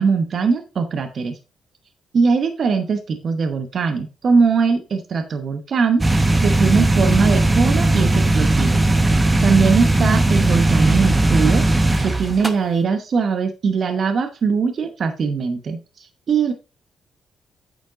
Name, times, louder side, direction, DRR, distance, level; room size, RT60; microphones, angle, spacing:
voice 1, 0.0-1.4 2.1-8.8 9.4-16.5, right 5 dB, 50° right, 7 dB, 0.9 m, -21 dB
sound 1, 6.0-12.5, right 2 dB, 15° right, 1.0 m, -17 dB
8.9 x 5.1 x 3.8 m, 0.32 s
cardioid pair, 110°, 0 cm